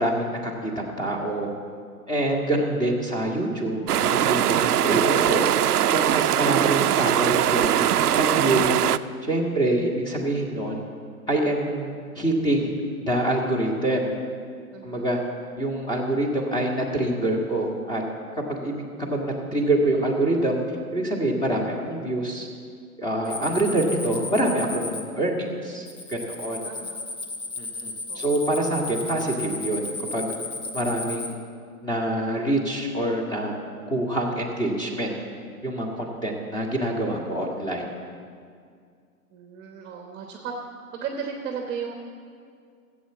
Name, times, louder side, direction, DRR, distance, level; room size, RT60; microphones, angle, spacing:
voice 1, 0.0-1.5 2.1-5.5 5.9-8.8 9.2-10.8 11.3-11.9 12.1-12.7 13.0-14.1 14.8-15.2 15.6-18.0 18.5-20.6 20.9-22.5 23.0-26.6 27.6-30.3 30.7-31.4 31.8-33.5 33.9-35.1 35.6-37.8, right 1 dB, 10° left, 0 dB, 1.6 m, -26 dB
sound 1, 3.9-9.0, right 11 dB, 80° right, 0.5 m, -21 dB
voice 2, 14.7-15.1 26.6-27.0 28.1-28.4 39.3-40.5 40.9-41.9, right 7 dB, 25° right, 3 dB, 1.1 m, -35 dB
sound 2, 23.2-25.0 25.9-31.3, left 3 dB, 75° left, 1.9 m, -34 dB
14.0 x 8.1 x 7.4 m, 2.2 s
hypercardioid pair, 125°, 45 cm